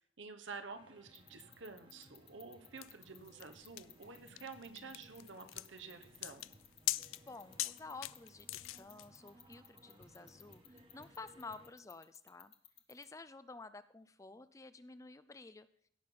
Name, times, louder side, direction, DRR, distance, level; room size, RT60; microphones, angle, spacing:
voice 1, 0.2-6.5, right 4 dB, 75° right, 8 dB, 1.1 m, -50 dB
sound 1, 0.7-11.7, right 1 dB, 25° right, 1.3 m, -63 dB
sound 2, 1.1-13.0, left 11 dB, 30° left, 0.9 m, -58 dB
sound 3, 2.8-9.1, left 17 dB, 90° left, 0.4 m, -42 dB
voice 2, 7.3-12.5 12.9-15.7, left 3 dB, 15° left, 13 dB, 0.4 m, -52 dB
17.0 x 5.9 x 3.8 m, 0.66 s
head